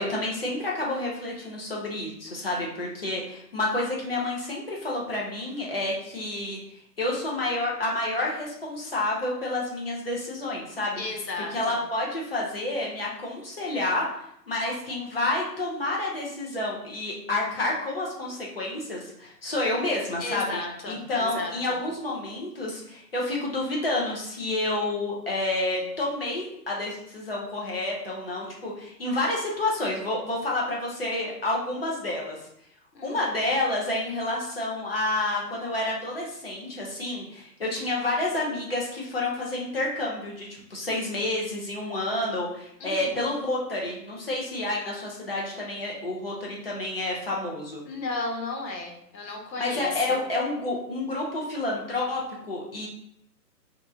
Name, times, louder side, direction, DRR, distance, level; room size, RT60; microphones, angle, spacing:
voice 1, 0.0-6.6 7.0-11.0 11.5-14.2 14.5-32.4 33.0-47.8 49.6-52.9, left 2 dB, 35° left, -3 dB, 0.6 m, -29 dB
voice 2, 11.0-11.8 20.2-21.8 32.9-33.2 42.8-43.4 47.8-50.2, left 3 dB, 90° left, 1 dB, 1.1 m, -35 dB
2.9 x 2.3 x 3.7 m, 0.75 s
hypercardioid pair, 175°, 50 cm